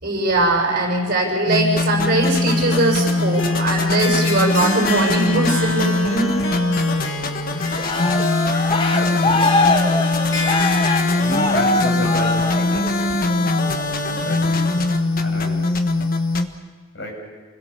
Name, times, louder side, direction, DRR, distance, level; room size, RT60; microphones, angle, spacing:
voice 1, 0.0-6.3, right 2 dB, 50° right, 0 dB, 6.5 m, -20 dB
sound 1, 1.5-16.5, left 2 dB, 45° left, 1.4 m, -21 dB
Harp, 2.3-13.5, left 3 dB, 75° left, 2.0 m, -30 dB
Cheering, 7.8-13.0 13.5-13.8, left 2 dB, 25° left, 1.3 m, -23 dB
voice 2, 8.9-9.8 11.2-13.4 13.8-14.8 15.2-15.7 16.9-17.1, left 1 dB, 60° left, 1 dB, 6.4 m, -31 dB
29.5 x 21.0 x 7.1 m, 1.4 s
head